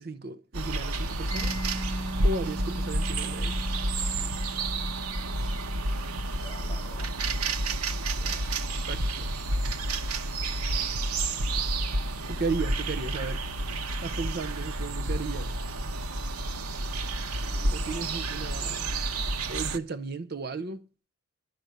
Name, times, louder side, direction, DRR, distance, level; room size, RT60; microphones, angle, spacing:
voice 1, 0.0-1.6 2.2-3.5 8.9-9.3 12.3-13.4 14.0-15.5 17.7-18.9 19.5-20.8, right 3 dB, 45° right, 0.6 m, -35 dB
sound 1, 0.5-19.8, right 2 dB, 90° right, 1.0 m, -30 dB
Mallet percussion, 1.3-8.8, right 1 dB, 20° right, 1.2 m, -41 dB
voice 2, 6.4-7.2 8.1-8.5 17.5-18.1, left 1 dB, 25° left, 3.0 m, -49 dB
11.0 x 6.5 x 9.3 m
head